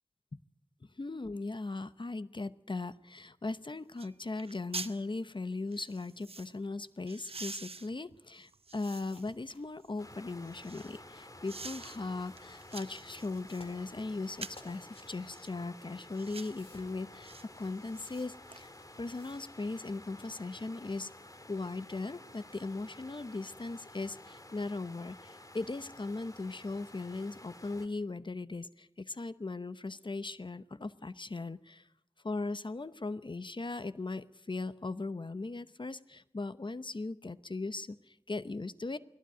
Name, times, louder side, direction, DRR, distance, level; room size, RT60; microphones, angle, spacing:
voice 1, 1.0-18.7 19.0-21.1 21.5-31.9 32.2-39.0, left 3 dB, 55° left, 14 dB, 0.8 m, -38 dB
sound 1, 3.5-3.6 4.0-4.1 4.4-5.0 5.7-6.5 7.1-9.3 9.8-11.0 11.5-12.0 12.4-13.7 14.3-14.7 15.3-15.5 16.1-16.6 17.2-17.4 17.8-18.6 19.0-19.1, right 4 dB, 85° right, 0.8 m, -46 dB
sound 2, 9.0-15.1 16.1-19.4, left 2 dB, 80° left, 4.2 m, -61 dB
sound 3, 10.0-27.9, left 1 dB, 35° left, 2.0 m, -52 dB
20.5 x 17.0 x 9.1 m, 0.80 s
wide cardioid pair, 50°, 10 cm